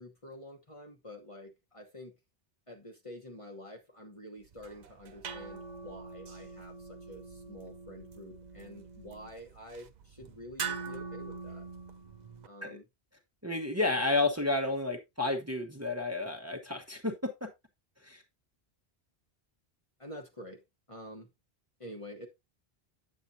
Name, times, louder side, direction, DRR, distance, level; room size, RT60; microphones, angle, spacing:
voice 1, 0.0-2.1 2.7-11.7 12.5-12.8 13.9-14.0 20.0-20.6 20.9-21.3 21.8-22.3, equal, 30° left, 1.2 m, -48 dB
sound 1, 4.4-12.5, right 5 dB, 50° right, 0.7 m, -43 dB
voice 2, 13.4-17.5 18.0-18.2, left 2 dB, 15° right, 1.1 m, -31 dB
8.9 x 7.5 x 2.7 m
omnidirectional pair, 1.1 m